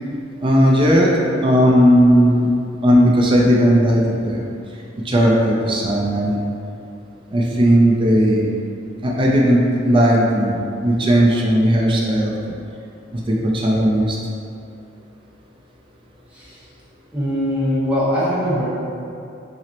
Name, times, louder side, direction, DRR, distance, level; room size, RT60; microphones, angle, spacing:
voice 1, 0.4-1.1 1.4-2.5 2.8-4.4 5.0-6.4 7.3-8.5 9.0-10.6 10.8-12.6 13.1-14.2, equal, 25° right, -3 dB, 0.4 m, -16 dB
voice 2, 17.1-18.7, equal, 5° right, -10 dB, 0.9 m, -21 dB
5.8 x 2.0 x 2.8 m, 2.6 s
head